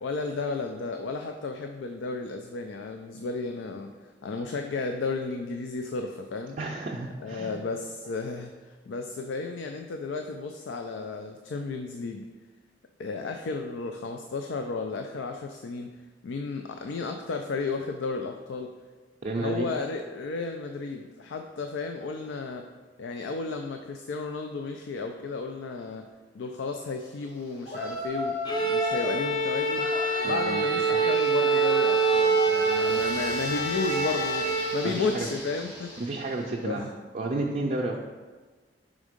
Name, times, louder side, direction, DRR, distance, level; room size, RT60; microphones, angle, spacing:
voice 1, 0.0-3.9 4.2-6.6 7.2-12.3 13.0-15.9 16.2-18.7 19.4-22.6 23.0-26.1 26.3-29.9 30.2-36.0 36.6-36.9, left 4 dB, 85° left, 5 dB, 0.4 m, -33 dB
voice 2, 6.6-7.5 19.2-19.7 30.2-30.6 30.9-31.3 34.8-35.3 36.0-36.9 37.1-38.0, right 2 dB, 45° right, -1 dB, 0.5 m, -31 dB
Yell, 27.6-29.2 29.7-36.5, left 1 dB, 55° left, 1.6 m, -36 dB
Bowed string instrument, 28.4-34.8, right 4 dB, 25° left, 0.5 m, -25 dB
5.1 x 3.6 x 5.0 m, 1.3 s
head